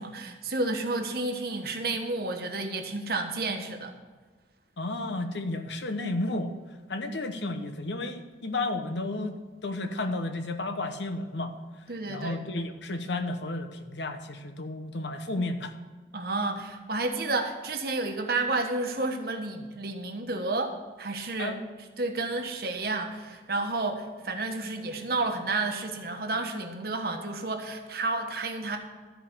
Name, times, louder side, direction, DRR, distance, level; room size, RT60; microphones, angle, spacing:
voice 1, 0.0-3.9 11.9-12.4 16.1-20.7 21.0-21.6 22.0-28.8, right 2 dB, 55° right, 4 dB, 1.3 m, -31 dB
voice 2, 4.8-6.5 6.9-9.4 9.6-11.5 12.1-15.8 21.4-21.6, left 2 dB, 80° left, 8 dB, 1.0 m, -32 dB
13.5 x 5.1 x 6.9 m, 1.4 s
head